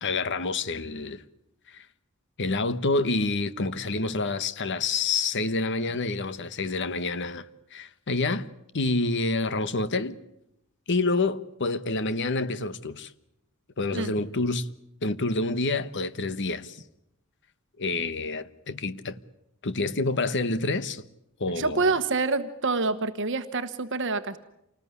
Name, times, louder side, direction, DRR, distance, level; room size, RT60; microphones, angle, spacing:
voice 1, 0.0-1.2 1.7-1.9 2.4-8.5 8.7-10.2 10.9-13.1 13.8-14.7 15.0-16.8 17.8-19.2 19.6-21.0 21.4-22.0, left 3 dB, 55° left, 1.2 m, -28 dB
voice 2, 21.6-24.4, right 3 dB, 60° right, 1.2 m, -27 dB
28.0 x 19.5 x 9.6 m
head